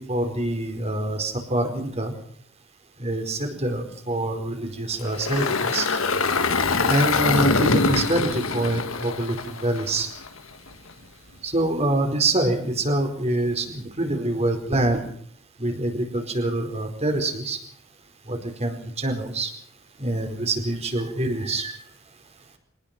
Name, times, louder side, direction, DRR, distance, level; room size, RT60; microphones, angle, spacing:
voice 1, 0.0-2.1 3.0-5.9 6.9-10.1 11.4-15.0 15.6-17.6 18.3-19.5 20.0-21.7, right 1 dB, 30° right, 5 dB, 4.6 m, -25 dB
Engine, 5.0-10.3, left 3 dB, 70° left, 1.8 m, -24 dB
25.0 x 19.0 x 6.1 m, 0.64 s
head